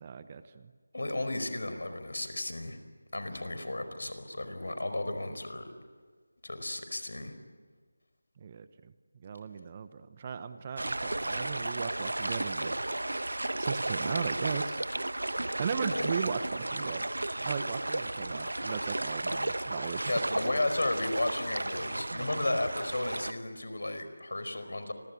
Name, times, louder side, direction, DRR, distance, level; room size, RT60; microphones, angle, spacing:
voice 1, 0.0-0.7 8.4-8.9 9.2-12.8 13.6-14.8 15.6-17.0 17.4-20.2, right 6 dB, 25° right, 12 dB, 1.1 m, -37 dB
voice 2, 0.9-2.8 3.1-5.7 6.4-7.3 15.9-16.1 20.1-24.9, left 2 dB, 75° left, 9 dB, 4.9 m, -33 dB
sound 1, 10.8-23.3, right 1 dB, 85° right, 1.1 m, -34 dB
29.5 x 23.0 x 8.6 m, 1.5 s
figure-of-eight pair, 170°, 0 cm